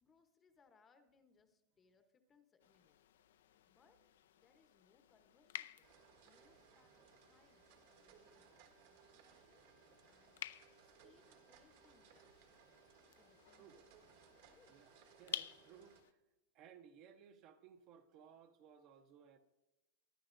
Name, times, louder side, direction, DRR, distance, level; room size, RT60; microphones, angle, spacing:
voice 1, 0.0-3.0 3.7-4.0 4.3-5.9 6.2-9.7 10.0-10.5 11.0-12.6 13.1-13.8 14.4-14.8, left 5 dB, 15° left, 0.8 m, -73 dB
sound 1, 2.6-16.1, left 11 dB, 85° left, 0.5 m, -54 dB
sound 2, 5.8-16.0, right 8 dB, 55° right, 1.4 m, -66 dB
voice 2, 15.2-16.2 16.5-19.4, right 8 dB, 35° right, 0.7 m, -61 dB
23.0 x 11.5 x 2.5 m
supercardioid pair, 170°, 0 cm